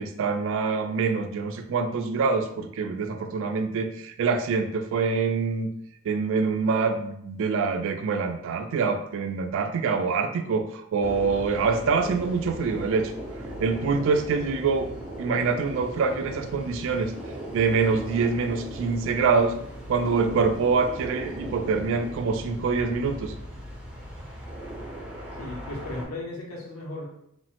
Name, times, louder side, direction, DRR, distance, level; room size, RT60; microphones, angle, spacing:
voice 1, 0.0-5.7 6.1-13.1 13.6-14.9 15.2-17.1 17.5-19.6 19.9-23.3, right 4 dB, 65° right, 7 dB, 0.3 m, -25 dB
sound 1, 11.0-26.0, right 1 dB, 5° right, 0.5 m, -38 dB
voice 2, 25.4-27.1, left 2 dB, 75° left, -3 dB, 0.8 m, -36 dB
3.0 x 2.0 x 2.8 m, 0.71 s
head